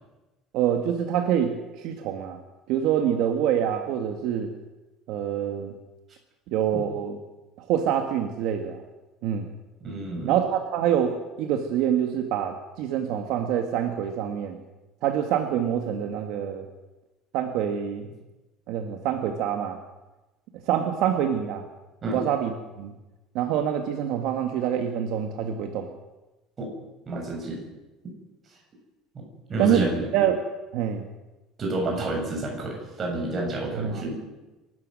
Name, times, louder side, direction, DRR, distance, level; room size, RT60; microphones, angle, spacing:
voice 1, 0.5-2.4 2.7-4.5 5.1-5.7 6.5-7.2 7.6-8.8 9.2-9.5 10.2-14.6 15.0-16.7 17.3-18.1 18.7-19.8 20.7-21.6 22.1-22.9 23.3-25.9 29.6-29.9 30.1-30.4 30.7-31.0 33.7-34.0, right 9 dB, 65° right, 4 dB, 1.9 m, -26 dB
voice 2, 9.8-10.3 22.0-22.2 26.6-26.7 27.1-27.6 29.5-30.1 31.6-34.2, right 2 dB, 25° right, 0 dB, 6.9 m, -30 dB
26.5 x 13.0 x 7.8 m, 1.1 s
cardioid pair, 160°, 0 cm